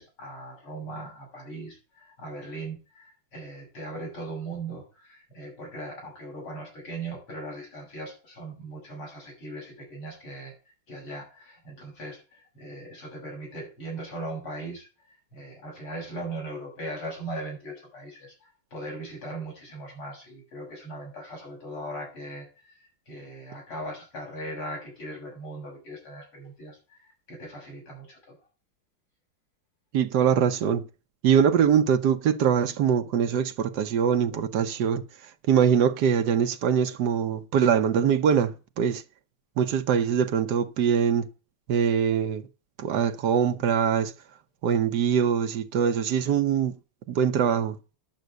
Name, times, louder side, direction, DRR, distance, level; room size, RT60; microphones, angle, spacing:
voice 1, 0.0-10.5 10.9-28.4, right 1 dB, 80° left, 7.8 m, -39 dB
voice 2, 29.9-30.8 31.2-39.0 39.6-41.3 41.7-42.5 42.8-44.1 44.6-46.7 47.1-47.8, right 8 dB, 60° right, 1.2 m, -23 dB
10.5 x 6.2 x 7.9 m
omnidirectional pair, 2.3 m